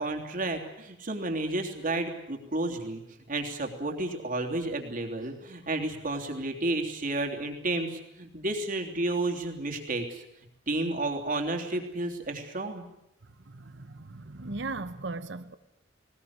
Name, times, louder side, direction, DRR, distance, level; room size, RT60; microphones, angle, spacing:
voice 1, 0.0-3.0 3.3-10.2 10.7-12.9, right 2 dB, 45° right, 3.3 m, -31 dB
voice 2, 13.5-15.6, right 3 dB, 70° right, 1.2 m, -37 dB
20.0 x 19.5 x 9.6 m
head